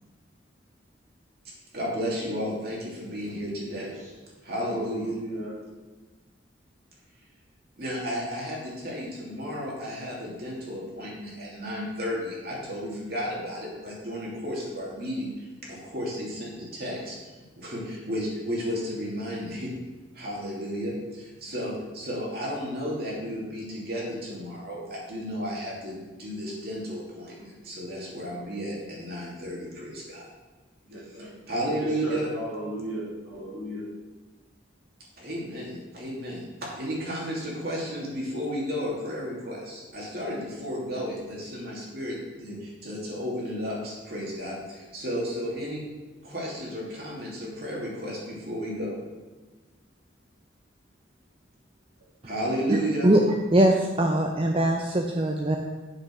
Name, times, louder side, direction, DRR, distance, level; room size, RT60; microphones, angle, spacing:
voice 1, 1.7-3.9 4.4-5.1 7.8-17.2 17.6-19.7 20.1-30.3 31.1-32.3 35.2-36.4 36.8-45.8 46.2-49.0 52.2-53.1, equal, 55° right, -4 dB, 2.9 m, -33 dB
voice 2, 4.5-5.6 30.9-31.3 31.7-33.8, right 1 dB, 90° right, -6 dB, 3.2 m, -35 dB
voice 3, 53.5-55.6, right 1 dB, 30° right, 2 dB, 0.6 m, -21 dB
8.0 x 6.7 x 6.1 m, 1.2 s
head